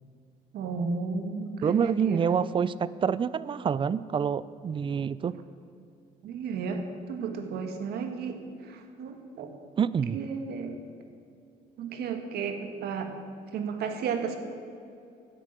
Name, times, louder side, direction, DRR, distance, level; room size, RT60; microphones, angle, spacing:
voice 1, 0.5-2.3 6.2-9.5 10.1-10.8 11.8-13.1 13.5-14.4, right 5 dB, 70° right, 5 dB, 1.6 m, -33 dB
voice 2, 1.6-5.3 9.8-10.2, right 7 dB, 30° right, 18 dB, 0.4 m, -27 dB
10.0 x 8.9 x 9.0 m, 2.5 s
cardioid pair, 110°, 17 cm